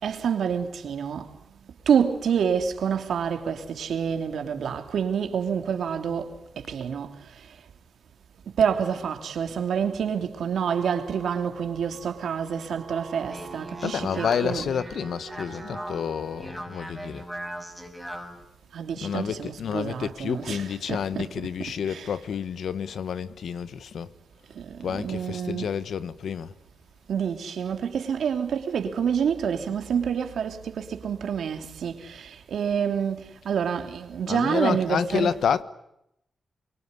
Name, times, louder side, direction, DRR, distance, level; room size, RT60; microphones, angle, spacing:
voice 1, 0.0-1.3 1.9-7.2 8.6-14.7 18.7-21.3 21.6-22.1 24.5-25.7 27.1-35.3, right 7 dB, 90° right, 3.0 m, -28 dB
sound 1, 10.7-16.7, right 5 dB, 50° right, 4.7 m, -44 dB
Speech, 13.0-18.4, equal, 5° left, 5.8 m, -39 dB
voice 2, 13.8-17.3 19.0-24.1 24.8-26.5 34.3-35.6, left 7 dB, 85° left, 1.3 m, -29 dB
24.5 x 24.0 x 9.7 m
wide cardioid pair, 100°, 0 cm